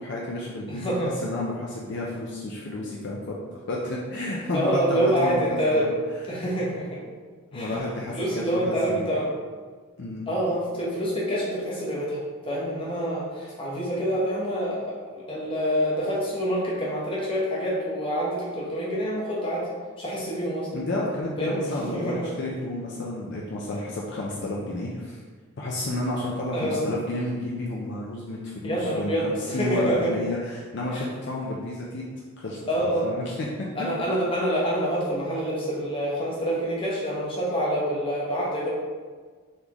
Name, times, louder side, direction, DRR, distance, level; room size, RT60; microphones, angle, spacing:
voice 1, 0.0-1.0 1.2-3.4 3.7-5.4 5.7-5.9 6.3-6.4 7.5-9.0 10.0-10.3 20.7-25.2 25.6-32.0 32.4-33.7, left 1 dB, 50° left, -4 dB, 0.5 m, -31 dB
voice 2, 0.7-1.1 4.5-5.9 6.3-7.0 7.5-7.8 8.1-9.3 10.3-19.7 20.0-20.7 21.4-22.3 26.5-26.9 28.6-30.1 30.9-31.0 32.7-33.1 33.7-38.7, equal, 25° left, -6 dB, 0.9 m, -27 dB
4.0 x 3.4 x 2.9 m, 1.5 s
head